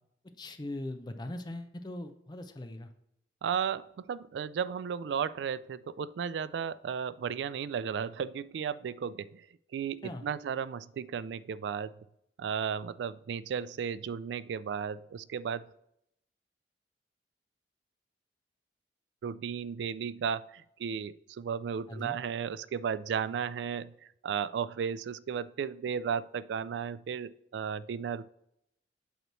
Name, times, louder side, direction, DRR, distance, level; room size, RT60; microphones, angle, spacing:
voice 1, 0.4-2.9 10.0-10.3 21.9-22.2, left 1 dB, 25° left, 7 dB, 0.5 m, -40 dB
voice 2, 3.4-9.4 9.7-11.9 12.4-15.7 19.2-23.9 24.2-28.3, right 7 dB, 80° right, 17 dB, 0.3 m, -34 dB
8.0 x 3.0 x 6.1 m, 0.77 s
head